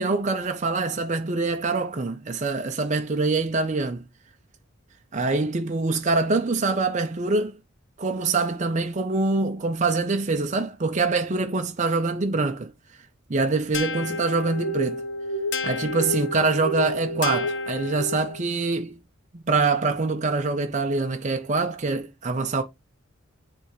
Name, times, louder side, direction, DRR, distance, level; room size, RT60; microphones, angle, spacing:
voice 1, 0.0-4.0 5.1-7.6 8.0-12.7 13.3-15.0 15.6-19.0 19.3-22.6, right 3 dB, 35° right, 0.6 m, -24 dB
sound 1, 13.7-18.5, left 2 dB, 60° left, 0.8 m, -30 dB
9.7 x 3.4 x 3.1 m
head